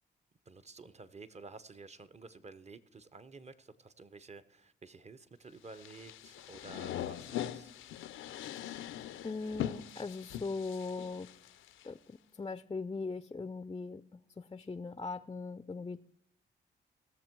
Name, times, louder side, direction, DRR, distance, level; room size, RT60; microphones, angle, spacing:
voice 1, 0.5-7.7 8.5-8.6, right 4 dB, 35° right, 0.9 m, -52 dB
sound 1, 5.7-11.8, left 11 dB, 80° left, 0.5 m, -41 dB
voice 2, 9.2-11.3 11.8-16.0, left 4 dB, 20° left, 0.4 m, -40 dB
17.5 x 6.9 x 4.6 m
supercardioid pair, 50°, 20 cm